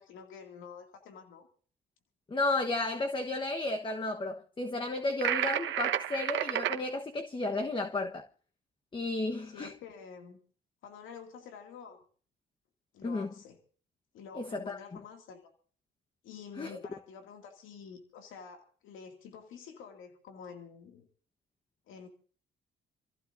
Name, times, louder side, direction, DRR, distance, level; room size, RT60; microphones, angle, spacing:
voice 1, 0.0-1.5 9.5-10.4 10.8-12.0 12.9-13.6 14.1-15.5 16.2-21.1 21.9-22.1, left 6 dB, 90° left, 2.4 m, -48 dB
voice 2, 2.3-8.3 8.9-9.7 13.0-13.3 14.4-14.8 16.6-16.8, left 2 dB, 25° left, 1.2 m, -33 dB
sound 1, 5.2-6.8, right 11 dB, 75° right, 1.2 m, -30 dB
27.5 x 15.0 x 2.7 m
cardioid pair, 90°, 20 cm